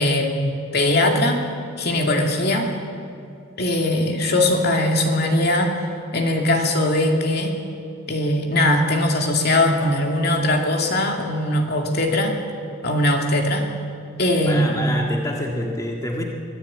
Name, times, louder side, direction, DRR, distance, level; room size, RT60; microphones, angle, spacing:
voice 1, 0.0-1.5 1.8-2.7 3.6-5.8 6.1-7.6 8.1-12.4 12.8-13.7 14.2-14.9, left 1 dB, 50° left, 2 dB, 2.5 m, -20 dB
voice 2, 14.5-16.2, left 1 dB, 15° left, 0 dB, 1.9 m, -27 dB
24.0 x 15.5 x 8.7 m, 2.5 s
head